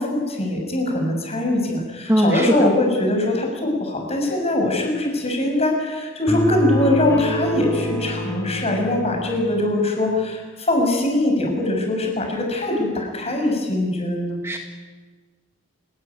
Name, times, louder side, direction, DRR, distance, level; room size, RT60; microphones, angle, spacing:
voice 1, 0.0-14.4, left 1 dB, 30° left, 1 dB, 6.9 m, -22 dB
voice 2, 2.1-2.7 14.4-14.6, equal, 10° right, 4 dB, 1.5 m, -19 dB
sound 1, 6.3-9.8, equal, 15° left, 4.3 m, -26 dB
28.0 x 19.0 x 9.8 m, 1.4 s
head